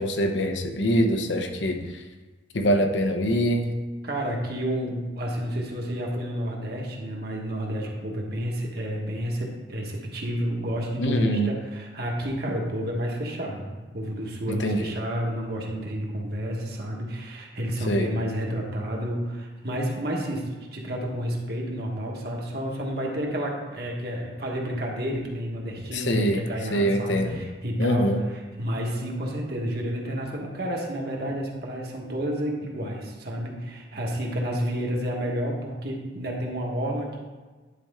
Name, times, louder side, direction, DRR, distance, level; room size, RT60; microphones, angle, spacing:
voice 1, 0.0-2.0 2.5-3.7 11.0-11.5 14.5-14.9 17.9-18.1 25.9-26.5 26.7-27.4 27.8-28.2, equal, 80° left, 4 dB, 0.8 m, -24 dB
voice 2, 4.0-28.0 28.6-37.3, equal, 55° right, -1 dB, 1.4 m, -30 dB
10.5 x 4.3 x 3.6 m, 1.3 s
head